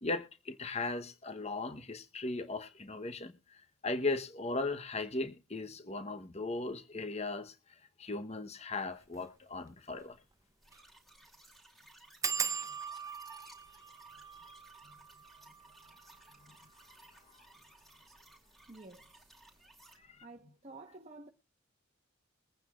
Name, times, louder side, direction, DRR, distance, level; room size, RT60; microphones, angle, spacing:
voice 1, 0.0-7.5 8.0-10.2 16.4-16.6 20.0-20.2, left 3 dB, 30° left, 1.0 m, -37 dB
sound 1, 9.0-9.2 9.7-9.8 10.0-10.1 10.6-10.9 11.1-11.2 12.2-17.5 18.2-18.7 19.0-19.4 19.6-19.7, right 6 dB, 15° right, 0.6 m, -41 dB
sound 2, 10.6-20.0, right 1 dB, ahead, 2.7 m, -60 dB
voice 2, 18.7-19.3 19.9-21.3, right 2 dB, 30° right, 1.1 m, -52 dB
22.5 x 9.1 x 2.4 m
head